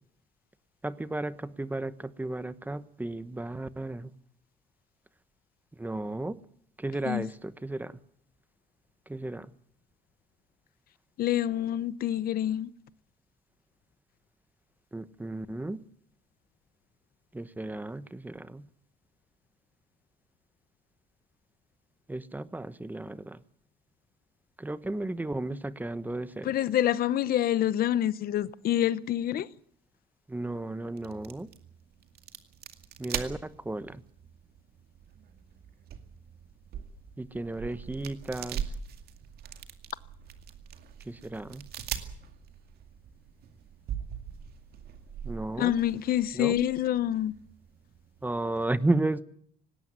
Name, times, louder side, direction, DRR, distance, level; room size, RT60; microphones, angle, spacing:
voice 1, 0.8-4.1 5.8-6.4 6.8-8.0 9.1-9.5 14.9-15.8 17.3-18.6 22.1-23.4 24.6-26.5 30.3-31.5 33.0-34.0 37.2-38.6 41.1-41.7 45.2-45.8 46.3-46.6 48.2-49.2, right 2 dB, 10° right, 1.1 m, -33 dB
voice 2, 11.2-12.7 26.4-29.5 45.6-47.3, left 12 dB, 60° left, 0.8 m, -27 dB
sound 1, 31.0-48.6, right 8 dB, 65° right, 2.3 m, -42 dB
19.0 x 17.0 x 9.4 m
cardioid pair, 110°, 17 cm